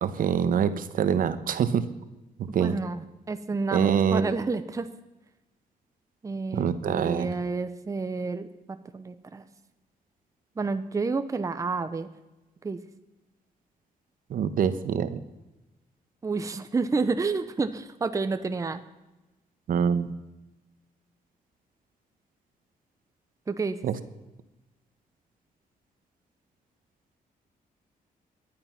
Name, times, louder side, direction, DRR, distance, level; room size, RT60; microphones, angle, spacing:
voice 1, 0.0-1.8 2.5-2.7 3.7-4.2 6.5-7.3 14.3-15.2 19.7-20.1 23.8-24.0, right 8 dB, 65° right, 12 dB, 1.1 m, -25 dB
voice 2, 2.6-4.9 6.2-9.4 10.6-12.1 12.6-12.8 16.2-18.8 23.5-23.8, right 4 dB, 20° right, 9 dB, 0.8 m, -30 dB
19.0 x 11.5 x 5.9 m, 1.0 s
cardioid pair, 140°, 15 cm